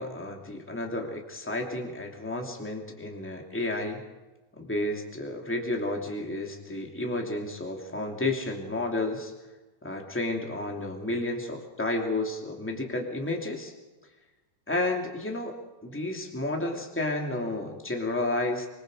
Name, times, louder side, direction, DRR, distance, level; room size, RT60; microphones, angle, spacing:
voice 1, 0.0-4.0 4.6-9.3 9.8-13.7 14.7-18.7, left 2 dB, 5° left, 2 dB, 1.4 m, -31 dB
24.5 x 24.0 x 5.0 m, 1.1 s
omnidirectional pair, 5.0 m